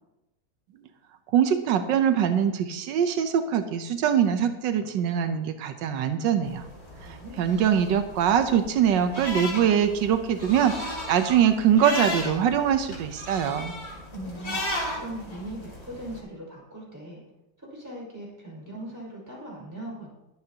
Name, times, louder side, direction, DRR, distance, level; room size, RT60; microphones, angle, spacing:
voice 1, 1.3-6.6 7.0-13.7, right 8 dB, 90° right, 8 dB, 1.5 m, -23 dB
sound 1, 6.4-16.2, left 1 dB, 35° left, 2.6 m, -36 dB
voice 2, 6.9-7.5 14.1-17.2 17.6-20.1, right 1 dB, 10° right, -5 dB, 5.2 m, -40 dB
21.5 x 7.9 x 2.9 m, 0.93 s
omnidirectional pair, 1.9 m